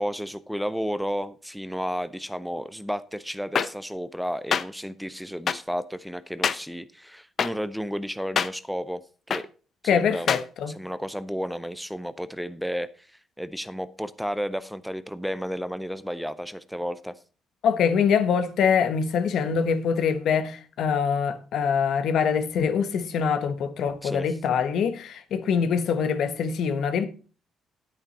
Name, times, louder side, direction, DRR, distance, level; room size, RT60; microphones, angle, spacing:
voice 1, 0.0-9.0 9.3-9.5 9.8-10.3 10.7-13.1 13.4-17.2 24.0-24.2, equal, ahead, 0.6 m, -32 dB
sound 1, 3.6-3.7 4.5-4.6 5.5-5.6 6.4-6.6 7.4-7.5 8.4-8.5 9.3-9.4 10.3-10.4, left 7 dB, 55° left, 0.7 m, -23 dB
voice 2, 9.9-10.7 17.6-27.1, left 6 dB, 75° left, 1.2 m, -24 dB
9.7 x 8.9 x 4.1 m
cardioid pair, 90°, 0 cm